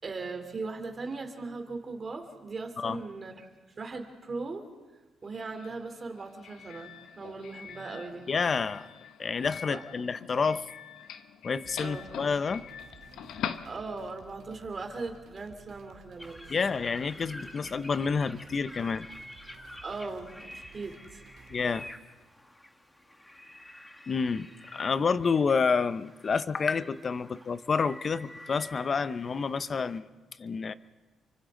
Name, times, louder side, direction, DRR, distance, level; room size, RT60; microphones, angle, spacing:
voice 1, 0.0-3.5 3.8-4.6 5.2-8.3 9.7-9.8 11.8-12.0 13.6-16.7 19.8-21.2, right 3 dB, 35° right, 4 dB, 3.4 m, -39 dB
Doorbell, 5.2-14.3, left 8 dB, 80° left, 1.0 m, -43 dB
voice 2, 8.3-8.9 9.2-10.7 11.4-12.7 16.5-19.1 21.5-21.9 24.1-30.1 30.4-30.7, left 5 dB, 40° left, 14 dB, 0.8 m, -29 dB
sound 1, 11.6-21.9, right 6 dB, 65° right, 2.1 m, -55 dB
sound 2, 16.2-30.0, left 1 dB, 10° left, 1.6 m, -49 dB
29.5 x 24.5 x 3.9 m, 1.2 s
cardioid pair, 90°, 0 cm